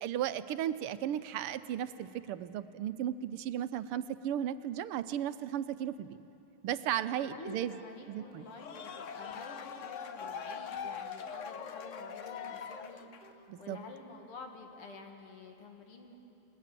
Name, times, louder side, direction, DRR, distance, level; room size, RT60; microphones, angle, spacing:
voice 1, 0.0-6.2 6.6-7.8 8.1-8.5 13.5-13.8, right 10 dB, 85° right, 12 dB, 1.7 m, -35 dB
voice 2, 7.1-16.1, left 3 dB, 85° left, 3 dB, 2.7 m, -50 dB
sound 1, 7.7-7.8 8.2-8.3 8.7-8.8 9.2-9.3 9.7-9.8 10.2-10.3 10.7-10.8 11.2-11.3 11.7-11.8 12.2-12.3 12.7-12.8 13.2-13.3 13.7-13.8, right 3 dB, 5° right, 3.8 m, -56 dB
sound 2, 8.4-13.4, left 7 dB, 60° left, 0.8 m, -42 dB
29.0 x 20.0 x 7.6 m, 2.9 s
omnidirectional pair, 2.4 m